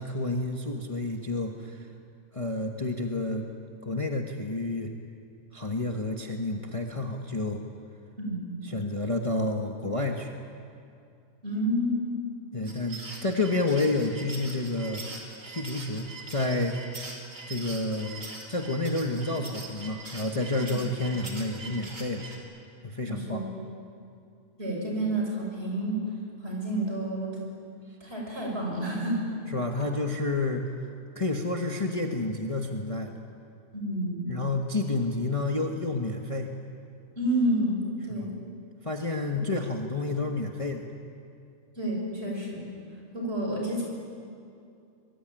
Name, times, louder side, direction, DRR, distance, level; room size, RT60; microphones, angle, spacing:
voice 1, 0.0-1.9 2.3-3.5 3.8-4.9 5.5-7.6 8.6-10.3 12.5-15.1 15.5-17.0 17.5-18.2 18.5-22.3 22.8-23.4 29.5-30.6 31.1-33.2 34.3-36.5 38.1-38.3 38.8-40.8, left 2 dB, 25° left, 2 dB, 1.4 m, -30 dB
voice 2, 11.4-12.0 20.6-20.9 23.0-23.5 24.6-26.0 26.4-27.3 28.0-29.2 33.7-34.3 37.2-38.3 41.8-42.7 43.1-43.8, right 1 dB, 40° right, -1 dB, 7.1 m, -29 dB
sound 1, 12.6-22.4, right 3 dB, 60° right, 4.0 m, -42 dB
24.5 x 22.5 x 9.1 m, 2.5 s
omnidirectional pair, 1.6 m